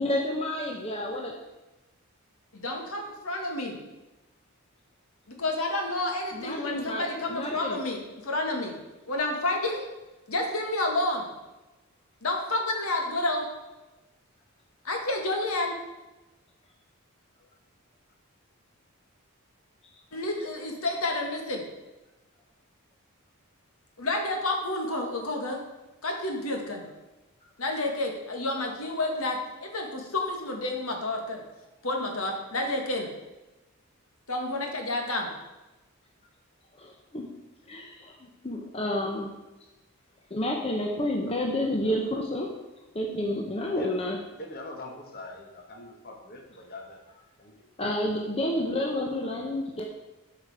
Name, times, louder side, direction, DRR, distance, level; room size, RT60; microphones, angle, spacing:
voice 1, 0.0-1.3 6.3-7.8 36.8-37.3 37.7-39.3 40.3-42.5 42.9-44.2 47.8-49.8, left 1 dB, 25° left, 0 dB, 0.8 m, -30 dB
voice 2, 2.5-3.8 5.3-8.7 9.1-9.9 10.3-11.2 12.2-13.5 14.8-15.8 20.1-21.6 24.0-25.6 26.0-26.8 27.6-31.4 31.8-33.1 34.3-35.3, left 2 dB, 70° left, 2 dB, 1.7 m, -30 dB
voice 3, 44.4-47.7, left 2 dB, 45° left, 1 dB, 1.2 m, -43 dB
12.0 x 5.2 x 4.8 m, 1.1 s
head